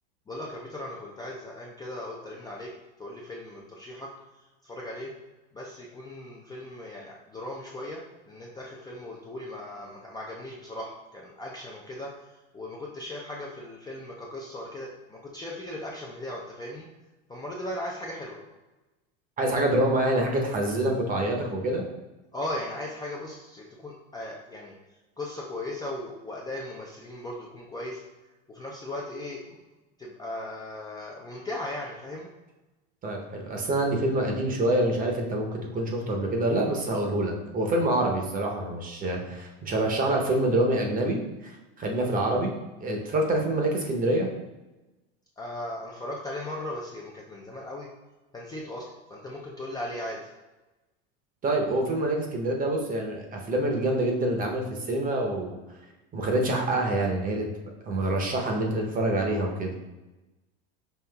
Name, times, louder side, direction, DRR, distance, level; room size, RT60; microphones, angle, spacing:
voice 1, 0.3-2.7 3.0-4.1 4.6-5.1 5.5-12.1 12.5-16.9 17.3-18.4 22.3-24.7 25.2-28.0 28.5-29.6 30.0-32.3 45.4-47.9 48.3-50.2, left 1 dB, 15° left, -3 dB, 0.4 m, -37 dB
voice 2, 19.4-21.8 33.0-42.5 42.8-44.3 51.4-55.6 56.1-57.5 57.9-59.7, right 1 dB, 30° right, 1 dB, 0.8 m, -26 dB
5.5 x 2.7 x 2.3 m, 1.1 s
supercardioid pair, 110°, 31 cm